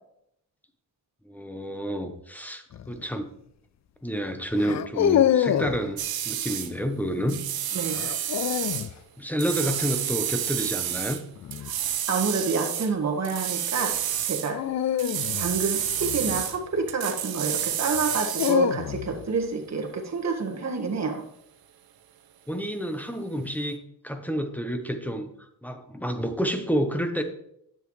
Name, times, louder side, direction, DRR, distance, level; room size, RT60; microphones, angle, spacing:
voice 1, 1.2-3.3 4.0-6.0 6.2-7.4 9.2-11.2 22.5-27.2, equal, 5° left, 7 dB, 0.9 m, -29 dB
sound 1, 2.7-3.0 4.6-5.8 7.9-8.9 11.4-11.7 14.5-16.9 18.0-19.3, left 10 dB, 50° left, 0.4 m, -26 dB
sound 2, 6.0-6.7 7.3-8.9 9.4-11.2 11.5-12.9 13.2-14.5 15.0-16.6 16.9-18.6, right 11 dB, 85° right, 0.7 m, -30 dB
voice 2, 12.1-14.6 15.4-21.2, right 4 dB, 50° right, 3 dB, 1.6 m, -28 dB
9.8 x 7.4 x 3.2 m, 0.75 s
cardioid pair, 105°, 35 cm